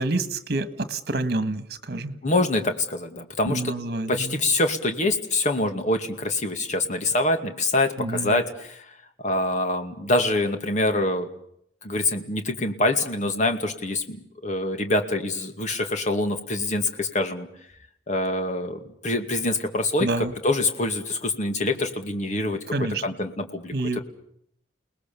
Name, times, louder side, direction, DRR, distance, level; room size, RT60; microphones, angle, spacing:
voice 1, 0.0-2.2 3.5-4.4 8.0-8.4 20.0-20.3 22.7-23.0 23.7-24.0, right 2 dB, 60° right, 12 dB, 1.6 m, -28 dB
voice 2, 2.2-3.7 4.1-8.8 9.2-11.3 11.8-17.5 18.1-22.6 23.0-24.0, left 2 dB, 45° left, 6 dB, 2.4 m, -25 dB
29.5 x 19.5 x 7.0 m, 0.72 s
head